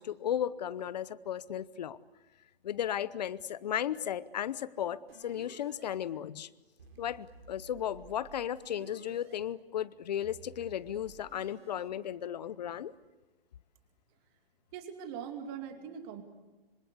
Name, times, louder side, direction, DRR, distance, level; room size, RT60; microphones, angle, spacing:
voice 1, 0.0-2.0 2.6-6.5 7.0-12.9, left 10 dB, 45° left, 19 dB, 0.8 m, -35 dB
sound 1, 5.1-6.0 6.8-9.4 10.2-11.9, right 5 dB, 75° right, 4.7 m, -54 dB
voice 2, 14.7-16.2, right 8 dB, 25° right, 7 dB, 2.6 m, -41 dB
26.0 x 26.0 x 8.2 m, 1.1 s
hypercardioid pair, 160°, 30 cm